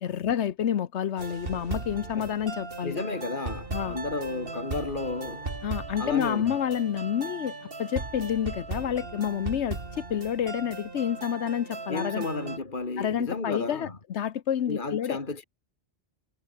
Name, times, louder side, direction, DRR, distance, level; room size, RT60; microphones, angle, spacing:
voice 1, 0.0-3.0 3.7-4.0 5.6-7.5 7.8-12.3 13.0-15.2, left 9 dB, 80° left, 1.1 m, -29 dB
sound 1, 1.2-12.6, right 3 dB, 55° right, 2.6 m, -37 dB
voice 2, 2.8-5.5 6.0-6.6 11.9-14.0 14.7-15.4, left 3 dB, 45° left, 2.4 m, -33 dB
omnidirectional pair, 1.1 m